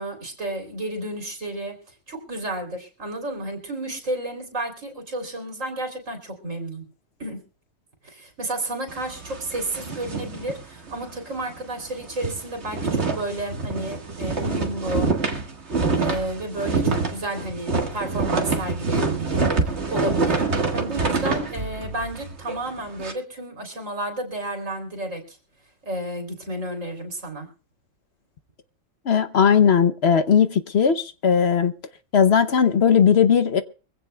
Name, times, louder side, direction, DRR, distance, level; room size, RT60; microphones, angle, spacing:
voice 1, 0.0-1.7 2.1-6.8 7.2-7.4 8.0-15.1 16.0-25.4 25.8-27.5, right 1 dB, 80° right, 3.9 m, -32 dB
sound 1, 8.9-11.2 11.5-11.6 11.9-23.1, right 3 dB, 60° right, 2.0 m, -26 dB
voice 2, 29.1-31.7 32.1-33.6, left 7 dB, 60° left, 1.0 m, -18 dB
24.0 x 16.0 x 2.3 m
omnidirectional pair, 1.3 m